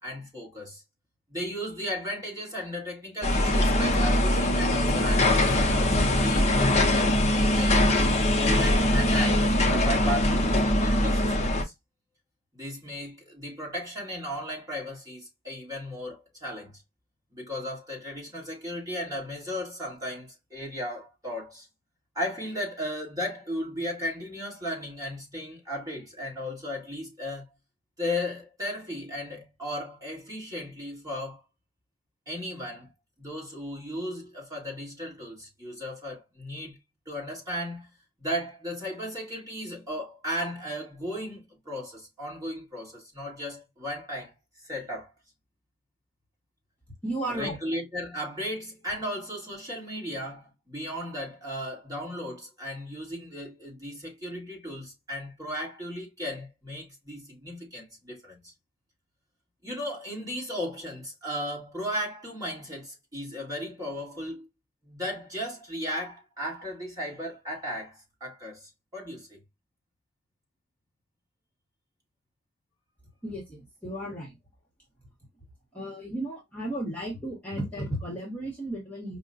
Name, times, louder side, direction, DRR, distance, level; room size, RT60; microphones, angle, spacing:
voice 1, 0.0-0.8 1.3-7.8 8.2-11.7 12.5-16.7 17.3-21.7 22.1-27.4 28.0-31.4 32.3-32.9 33.2-36.8 37.0-37.9 38.2-45.1 47.3-58.5 59.6-64.5 64.8-69.4, equal, 15° right, 1.7 m, -35 dB
sound 1, 3.2-11.6, left 1 dB, 30° left, 0.7 m, -22 dB
voice 2, 47.0-47.6 73.2-74.3 75.7-79.2, right 1 dB, 5° left, 1.2 m, -34 dB
5.2 x 2.2 x 2.5 m
head